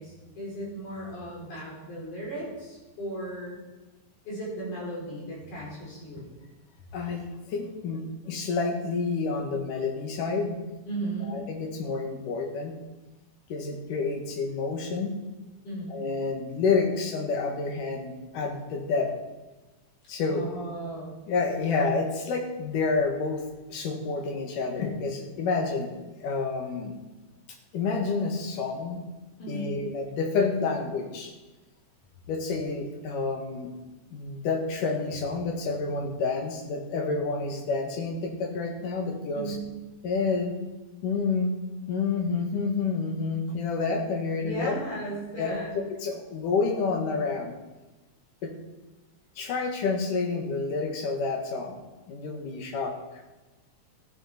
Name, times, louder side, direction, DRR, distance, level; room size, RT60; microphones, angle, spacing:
voice 1, 0.0-3.6 4.3-6.3 10.9-11.5 15.6-16.0 20.3-21.1 29.4-29.8 39.3-39.6 44.4-45.8, right 1 dB, 70° left, -4 dB, 6.1 m, -36 dB
voice 2, 6.9-10.6 11.2-12.8 13.5-15.1 15.9-19.1 20.1-20.5 21.3-23.4 23.7-26.9 27.7-29.0 29.5-31.3 32.3-33.7 34.1-39.6 40.0-40.6 41.0-41.5 41.9-44.8 45.4-45.6 45.9-47.5 48.4-48.5 49.4-51.8 52.1-52.9, left 4 dB, 85° left, 3 dB, 3.3 m, -29 dB
14.5 x 11.0 x 4.3 m, 1.1 s
omnidirectional pair, 3.6 m